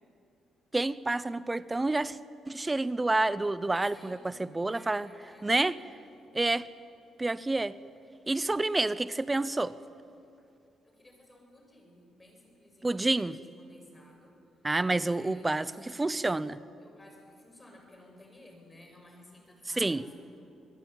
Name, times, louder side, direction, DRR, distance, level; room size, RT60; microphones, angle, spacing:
voice 1, 0.7-2.2 2.5-5.1 5.4-5.7 6.3-6.7 7.2-7.8 8.3-9.8 12.8-13.4 14.6-16.6 19.8-20.0, right 2 dB, 20° right, 0.8 m, -28 dB
voice 2, 3.7-5.6 10.8-14.3 14.6-14.7 14.9-15.7 16.8-20.3, left 1 dB, 15° left, 7.9 m, -55 dB
26.5 x 20.5 x 9.1 m
cardioid pair, 90°, 0 cm